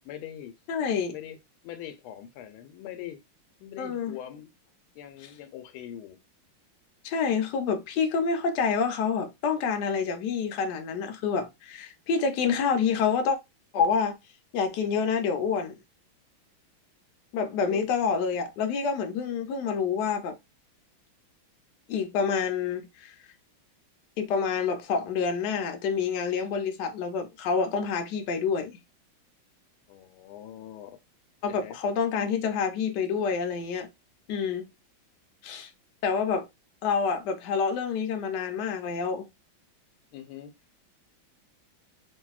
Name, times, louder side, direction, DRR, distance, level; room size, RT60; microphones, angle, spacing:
voice 1, 0.0-0.5 1.1-1.4 1.6-3.2 3.6-4.5 4.9-6.2 17.7-17.9 29.9-31.0 31.5-31.8 40.1-40.5, left 11 dB, 85° left, 1.4 m, -42 dB
voice 2, 0.7-1.1 3.8-4.1 7.0-13.4 13.7-14.2 14.5-15.8 17.3-20.3 21.9-23.2 24.2-28.8 31.4-33.9 34.3-34.7 35.4-35.7 36.0-36.5 36.8-39.3, left 6 dB, 70° left, 1.0 m, -27 dB
3.1 x 2.6 x 2.3 m
omnidirectional pair, 2.3 m